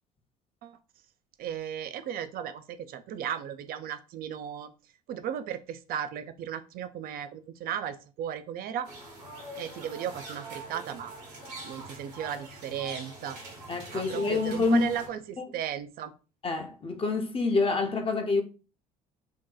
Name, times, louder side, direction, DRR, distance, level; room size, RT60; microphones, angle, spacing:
voice 1, 1.4-4.7 5.1-8.9 9.6-11.1 11.6-13.4 13.9-16.1, right 9 dB, 50° right, 0.4 m, -35 dB
sound 1, 8.8-15.1, right 2 dB, 85° right, 1.1 m, -43 dB
voice 2, 13.7-14.9 16.4-18.4, left 3 dB, 30° left, 0.7 m, -26 dB
2.7 x 2.2 x 3.8 m
hypercardioid pair, 60°, 19 cm